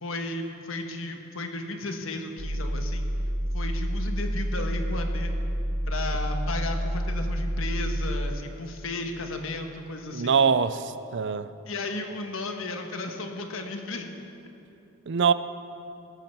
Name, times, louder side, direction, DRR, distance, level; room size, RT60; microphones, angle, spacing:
voice 1, 0.0-3.1 3.5-5.3 5.9-10.4 11.7-14.1, left 2 dB, 65° left, 4 dB, 1.4 m, -34 dB
sound 1, 2.4-8.3, equal, 85° right, 1.4 m, -29 dB
voice 2, 10.1-11.5 15.1-15.3, right 6 dB, 55° right, 13 dB, 0.5 m, -23 dB
17.5 x 13.0 x 4.6 m, 2.8 s
head